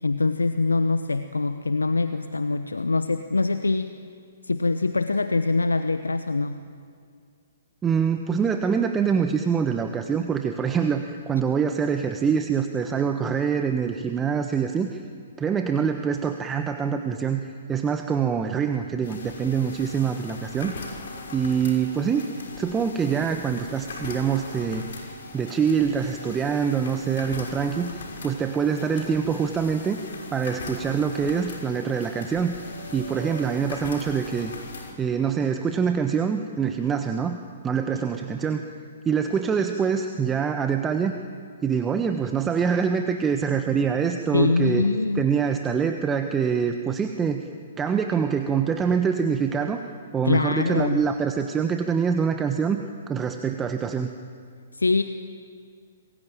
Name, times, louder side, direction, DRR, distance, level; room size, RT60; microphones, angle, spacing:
voice 1, 0.0-3.9 4.4-6.6 37.9-38.0 44.3-45.2 50.2-51.0 54.7-55.0, left 3 dB, 80° left, 10 dB, 1.0 m, -24 dB
voice 2, 7.8-15.0 15.4-20.9 21.3-22.3 22.6-24.9 25.3-30.0 30.3-32.5 32.9-34.5 35.0-37.4 37.6-38.6 39.0-41.2 41.6-44.8 45.1-47.4 47.8-49.8 50.1-52.8 53.1-54.1, right 6 dB, 15° right, 6 dB, 1.3 m, -25 dB
sound 1, 19.0-34.9, left 2 dB, 60° left, 6.0 m, -39 dB
27.5 x 21.5 x 9.1 m, 2.1 s
figure-of-eight pair, 120°, 0 cm